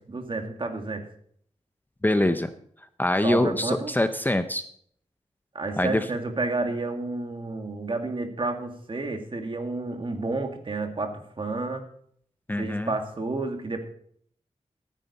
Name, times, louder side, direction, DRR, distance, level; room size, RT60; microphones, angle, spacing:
voice 1, 0.1-1.0 3.2-3.9 5.5-11.8 12.6-13.8, right 3 dB, 45° right, 5 dB, 2.0 m, -30 dB
voice 2, 2.0-2.5 3.0-4.6 5.8-6.1 12.5-12.9, left 1 dB, 15° left, 10 dB, 0.7 m, -24 dB
15.0 x 9.3 x 4.2 m, 0.63 s
wide cardioid pair, 85°, 12 cm